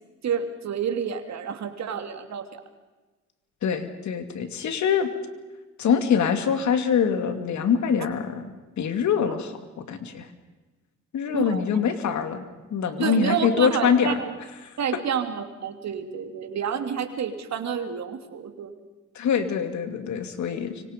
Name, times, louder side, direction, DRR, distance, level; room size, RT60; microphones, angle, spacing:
voice 1, 0.2-2.5 11.3-11.6 13.0-14.3 14.8-18.7, right 7 dB, 60° right, 7 dB, 2.9 m, -29 dB
voice 2, 3.6-5.1 5.8-8.5 8.8-10.3 11.1-12.4 12.7-14.2 14.6-14.7 19.1-20.8, left 7 dB, 70° left, 8 dB, 2.7 m, -24 dB
26.0 x 24.0 x 5.3 m, 1.2 s
cardioid pair, 90°, 30 cm